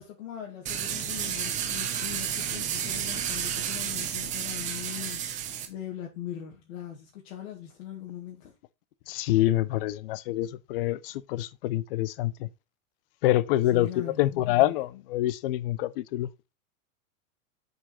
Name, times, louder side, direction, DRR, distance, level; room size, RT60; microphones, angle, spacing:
voice 1, 0.0-8.5 13.7-14.7, left 11 dB, 70° left, 2.0 m, -41 dB
sound 1, 0.7-5.7, right 9 dB, 20° right, 0.8 m, -31 dB
voice 2, 9.1-12.5 13.2-16.3, left 15 dB, 45° left, 0.5 m, -26 dB
6.3 x 4.9 x 4.3 m
supercardioid pair, 170°, 40 cm